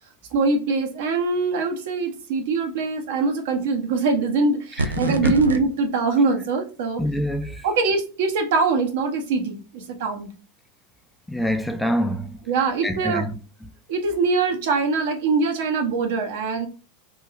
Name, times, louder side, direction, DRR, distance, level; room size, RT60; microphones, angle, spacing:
voice 1, 0.3-7.0 7.6-10.3 12.5-13.2 13.9-16.7, right 4 dB, 65° right, 0.7 m, -23 dB
voice 2, 4.8-5.3 7.0-7.6 11.3-12.4 12.8-13.4, equal, 5° left, 0.4 m, -25 dB
sound 1, 4.8-5.6, right 2 dB, 85° right, 0.3 m, -25 dB
2.9 x 2.6 x 2.4 m
hypercardioid pair, 90°, 0 cm